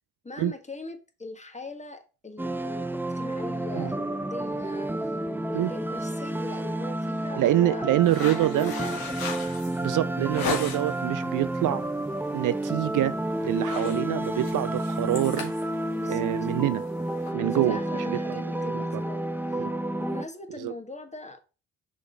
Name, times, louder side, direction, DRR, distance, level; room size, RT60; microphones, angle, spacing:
voice 1, 0.2-2.9 3.1-5.2 5.5-7.9 8.1-9.3 15.9-16.3 17.4-19.3 19.5-21.5, left 2 dB, 20° left, 1.7 m, -41 dB
sound 1, 2.4-20.2, right 1 dB, 5° right, 0.6 m, -30 dB
voice 2, 7.4-8.7 9.8-11.8 12.3-13.2 13.4-15.5 16.1-16.8 17.3-17.8 18.1-18.4 18.7-18.8 19.6-19.7 20.6-20.7, right 14 dB, 60° right, 0.5 m, -26 dB
sound 2, 8.0-11.0 11.5-11.9 12.2-12.4 12.7-13.1 13.4-17.3, left 5 dB, 70° left, 1.8 m, -36 dB
6.1 x 3.8 x 5.4 m
hypercardioid pair, 45°, 37 cm